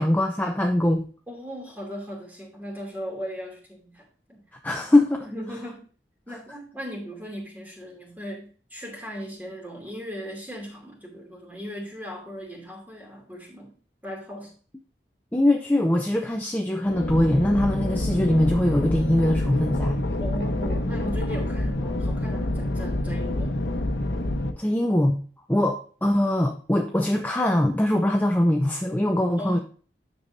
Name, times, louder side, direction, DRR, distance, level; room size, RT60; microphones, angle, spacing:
voice 1, 0.0-1.1 4.6-5.3 15.3-20.0 24.6-25.2 25.5-29.6, left 1 dB, 10° left, 2 dB, 0.6 m, -22 dB
voice 2, 1.3-4.4 4.8-4.9 5.2-5.8 6.3-13.8 14.0-14.5 20.2-23.5 29.4-29.6, equal, 10° right, -1 dB, 2.5 m, -37 dB
sound 1, 16.8-24.5, left 1 dB, 85° left, 1.0 m, -27 dB
10.0 x 6.9 x 2.7 m, 0.40 s
head